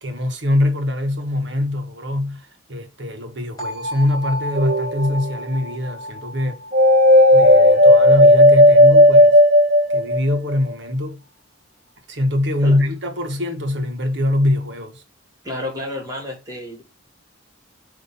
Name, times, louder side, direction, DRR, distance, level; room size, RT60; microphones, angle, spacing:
voice 1, 0.0-6.6 7.3-9.4 9.9-11.2 12.1-15.0, left 1 dB, 60° right, 1.4 m, -23 dB
sound 1, 3.6-9.4, left 1 dB, 20° left, 3.7 m, -34 dB
sound 2, 4.6-5.3 6.7-10.5, left 1 dB, 35° right, 1.1 m, -12 dB
voice 2, 15.4-16.8, left 1 dB, 20° right, 2.5 m, -30 dB
8.3 x 3.0 x 5.5 m
head